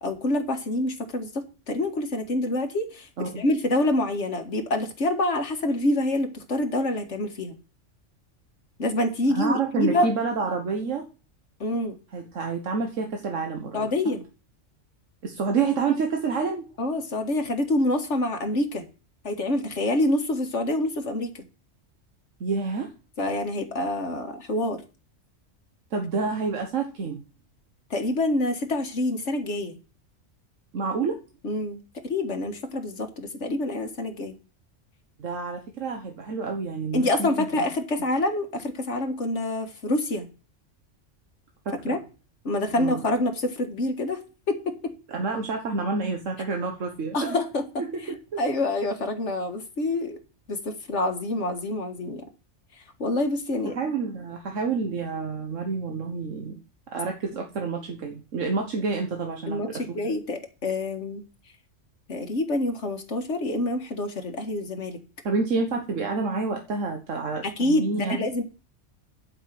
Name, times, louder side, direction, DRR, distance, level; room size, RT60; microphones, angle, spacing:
voice 1, 0.0-7.6 8.8-10.1 11.6-11.9 13.7-14.2 16.8-18.9 19.2-21.4 23.2-24.8 27.9-29.8 31.4-34.3 36.9-40.3 41.8-42.0 42.5-44.2 44.5-44.9 47.1-47.6 48.4-50.2 50.5-52.2 53.0-53.7 59.5-61.2 62.1-65.0 67.4-68.4, left 1 dB, 65° left, 5 dB, 2.0 m, -26 dB
voice 2, 9.3-11.0 12.1-14.1 15.2-16.7 22.4-22.9 25.9-27.2 30.7-31.2 35.2-37.5 41.6-42.0 42.8-43.0 45.1-47.4 47.8-48.4 53.6-56.6 56.9-60.0 65.2-68.3, right 4 dB, 80° right, 3 dB, 1.5 m, -28 dB
11.0 x 5.5 x 7.6 m, 0.34 s
omnidirectional pair, 1.3 m